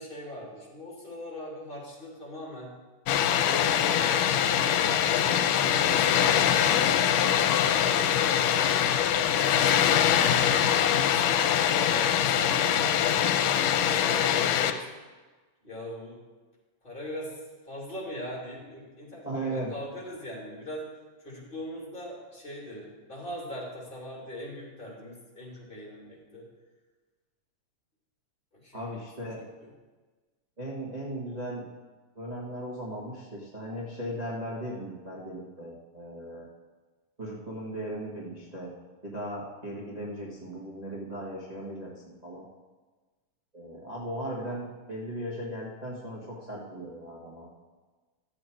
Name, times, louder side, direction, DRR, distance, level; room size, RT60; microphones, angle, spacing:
voice 1, 0.0-2.7 3.3-4.3 4.7-8.6 9.2-14.8 15.6-16.2 16.8-17.4 17.6-20.9 21.2-26.4 28.6-29.3, left 1 dB, 15° left, -4 dB, 2.5 m, -41 dB
Water, 3.1-14.7, left 9 dB, 85° left, 2.2 m, -23 dB
voice 2, 19.2-19.7 28.7-29.4 30.6-31.6 32.1-36.5 37.2-38.7 39.0-41.9 42.2-42.4 43.5-47.5, right 1 dB, 25° right, -5 dB, 0.9 m, -37 dB
13.0 x 8.0 x 4.6 m, 1.3 s
omnidirectional pair, 3.8 m